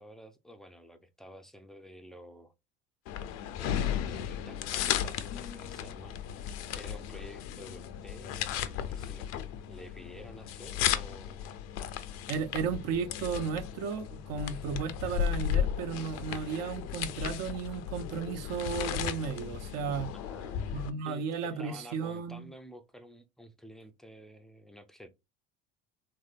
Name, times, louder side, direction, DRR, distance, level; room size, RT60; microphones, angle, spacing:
voice 1, 0.0-2.5 3.6-6.2 6.7-9.3 9.7-11.5 20.1-25.1, equal, ahead, 0.5 m, -50 dB
sound 1, 3.1-20.9, left 10 dB, 50° left, 0.5 m, -35 dB
voice 2, 12.3-20.1 20.7-22.5, right 6 dB, 50° right, 0.8 m, -34 dB
3.1 x 2.8 x 2.4 m
hypercardioid pair, 70°, 33 cm